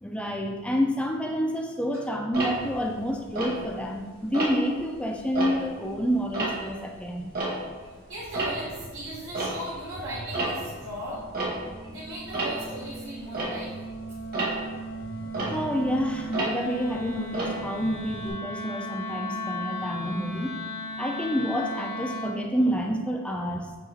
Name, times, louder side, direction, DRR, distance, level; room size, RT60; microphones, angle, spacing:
voice 1, 0.0-7.3 15.5-20.6 21.0-23.8, equal, 5° left, 2 dB, 0.4 m, -28 dB
Tick-tock, 2.3-4.0 4.3-4.8 5.2-7.9 8.2-18.3, right 2 dB, 45° right, 1.3 m, -33 dB
voice 2, 8.1-11.2 11.9-13.7, right 1 dB, 70° right, -7 dB, 0.9 m, -37 dB
Wind instrument woodwind instrument, 11.0-22.5, right 1 dB, 45° left, 0.6 m, -37 dB
6.5 x 2.9 x 2.8 m, 1.4 s
head